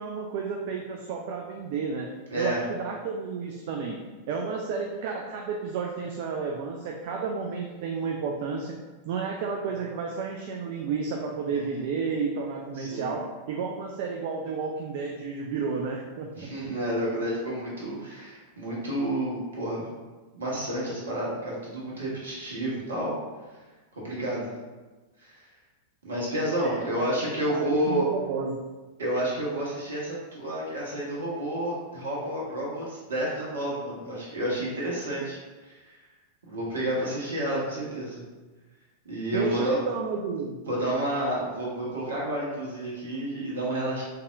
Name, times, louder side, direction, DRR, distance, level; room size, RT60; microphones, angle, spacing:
voice 1, 0.0-2.1 2.4-4.0 4.3-8.8 9.1-16.5 26.6-28.6 39.3-40.6, right 5 dB, 50° right, 1 dB, 0.4 m, -32 dB
voice 2, 2.3-2.6 11.5-11.9 12.8-13.2 16.4-19.9 20.3-23.1 23.9-24.5 25.2-25.4 26.0-28.0 29.0-35.4 35.6-36.0 36.5-38.2 39.0-39.8 40.7-44.0, right 1 dB, 65° right, -5 dB, 1.3 m, -30 dB
4.0 x 3.5 x 2.5 m, 1.3 s
figure-of-eight pair, 90°, 0 cm